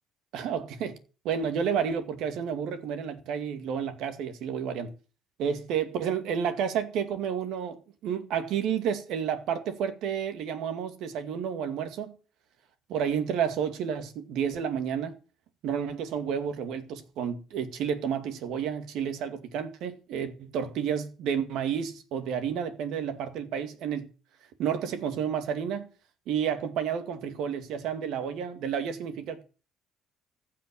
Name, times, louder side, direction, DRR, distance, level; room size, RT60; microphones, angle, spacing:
voice 1, 0.3-1.0 1.2-4.9 5.4-12.2 12.9-15.1 15.6-24.1 24.6-25.9 26.3-29.4, right 8 dB, 75° right, 2.2 m, -31 dB
15.0 x 5.8 x 8.6 m
cardioid pair, 120°, 0 cm